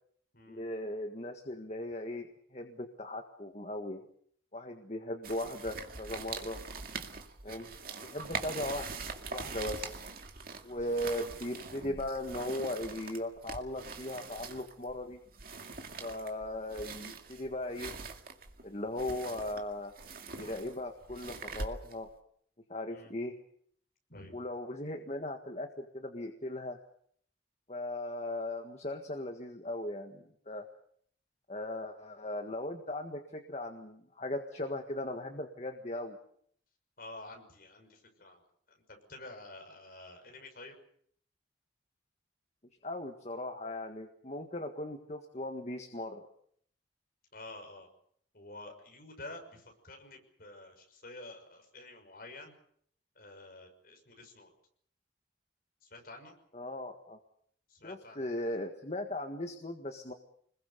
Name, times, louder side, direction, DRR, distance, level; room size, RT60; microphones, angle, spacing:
voice 1, 0.5-4.0 4.5-6.6 7.4-7.7 8.0-9.0 9.3-9.9 10.6-15.2 16.0-17.9 18.6-19.9 20.4-22.1 22.7-23.4 24.3-26.8 27.7-30.7 31.5-36.2 42.8-46.3 56.5-57.2 57.8-60.1, left 1 dB, 35° left, 5 dB, 1.7 m, -38 dB
sound 1, 5.2-22.1, right 4 dB, 50° right, 2.2 m, -43 dB
voice 2, 37.0-38.4 38.7-38.8 39.1-40.8 47.3-47.9 48.3-52.5 53.2-54.5 55.8-56.3 57.7-58.3, left 2 dB, 50° left, 3 dB, 6.1 m, -49 dB
26.5 x 21.0 x 6.8 m, 0.65 s
head